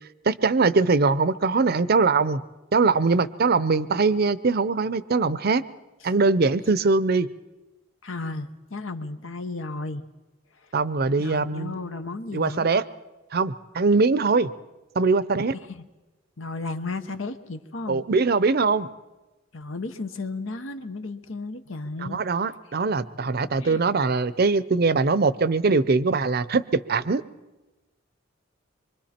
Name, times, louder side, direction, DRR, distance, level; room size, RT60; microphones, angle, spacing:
voice 1, 0.3-2.4 2.7-5.6 6.0-7.3 10.7-11.8 12.3-12.8 13.3-14.5 15.0-15.5 17.9-18.9 22.0-27.2, right 4 dB, 50° right, 16 dB, 0.6 m, -22 dB
voice 2, 8.0-10.0 11.2-12.7 15.7-15.8 16.4-18.0 19.5-22.2 23.6-23.9, left 3 dB, 80° left, 9 dB, 1.1 m, -34 dB
25.5 x 23.5 x 4.4 m, 1.1 s
head